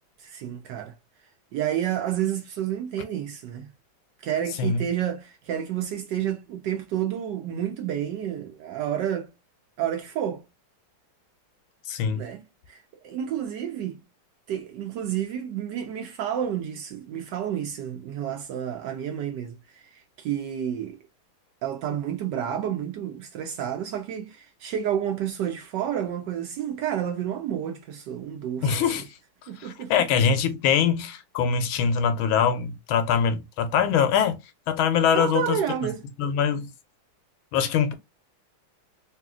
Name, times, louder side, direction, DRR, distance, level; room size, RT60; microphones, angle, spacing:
voice 1, 0.2-0.9 1.5-3.7 4.2-9.3 9.8-10.5 12.1-12.4 12.7-14.0 14.5-21.0 21.6-28.8 29.5-30.1 35.1-36.1, right 10 dB, 75° right, 1.1 m, -30 dB
voice 2, 11.9-12.2 28.6-29.1 29.6-34.4 34.7-35.6 36.2-36.7 37.5-37.9, left 7 dB, 80° left, 1.4 m, -23 dB
3.2 x 2.8 x 2.4 m
omnidirectional pair, 2.2 m